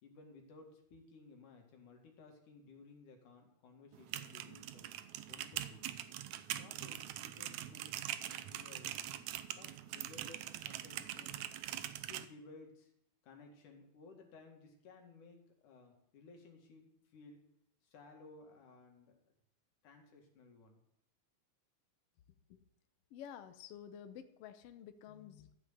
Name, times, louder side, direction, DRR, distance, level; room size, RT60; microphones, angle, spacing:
voice 1, 0.0-4.9 5.3-5.9 6.5-8.0 8.3-11.5 12.1-12.9 13.2-17.4 17.8-19.2 19.8-20.8, left 3 dB, 90° left, 2 dB, 3.5 m, -58 dB
sound 1, 3.9-12.3, right 12 dB, 75° right, 1.9 m, -43 dB
voice 2, 23.1-25.6, left 9 dB, 65° left, 9 dB, 1.6 m, -51 dB
13.5 x 5.8 x 8.0 m, 0.76 s
omnidirectional pair, 3.5 m